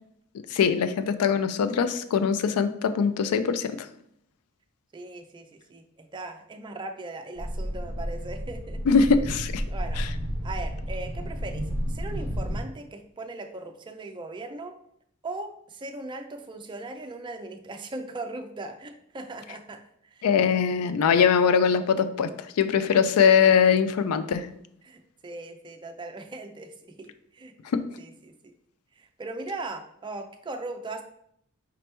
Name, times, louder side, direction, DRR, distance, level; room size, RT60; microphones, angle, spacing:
voice 1, 0.5-3.8 8.9-9.6 10.0-10.1 20.2-22.3 22.6-24.5 27.7-27.8, left 6 dB, 85° left, 11 dB, 0.4 m, -22 dB
voice 2, 4.9-8.8 9.7-10.0 10.4-14.7 15.2-20.3 24.8-27.5 28.0-28.5 29.0-31.0, right 2 dB, 20° right, 5 dB, 0.4 m, -39 dB
sound 1, 7.4-12.6, equal, 60° left, 1.3 m, -31 dB
5.1 x 2.9 x 3.2 m, 0.71 s
head